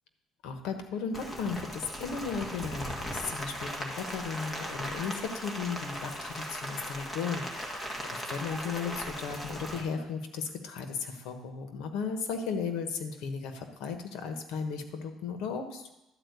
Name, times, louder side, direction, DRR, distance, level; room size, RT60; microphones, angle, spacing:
voice 1, 0.4-15.9, left 5 dB, 80° left, 6 dB, 1.3 m, -35 dB
Rain, 1.1-9.8, equal, 15° left, 1.8 m, -38 dB
11.5 x 4.6 x 8.1 m, 0.95 s
cardioid pair, 130°, 0 cm